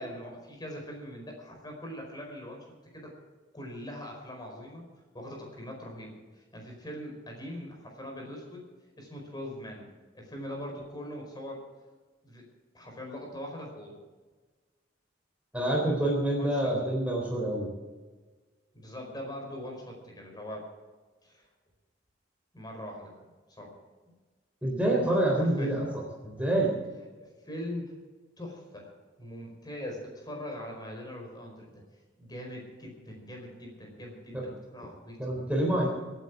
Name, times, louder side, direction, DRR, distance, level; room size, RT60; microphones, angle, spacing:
voice 1, 0.0-2.7 2.9-3.1 3.5-4.8 5.1-8.6 9.0-9.9 10.1-11.6 12.2-12.4 12.7-14.0 16.3-16.7 18.7-20.7 21.2-21.5 22.5-23.1 23.5-23.8 24.0-24.1 25.6-25.7 26.4-26.5 27.2-27.9 28.4-31.8 32.2-35.4, left 1 dB, 20° left, 1 dB, 4.7 m, -41 dB
voice 2, 15.5-17.7 24.6-26.7 34.3-34.4 35.2-35.9, right 1 dB, 5° right, -2 dB, 3.6 m, -27 dB
26.5 x 9.3 x 4.8 m, 1.3 s
head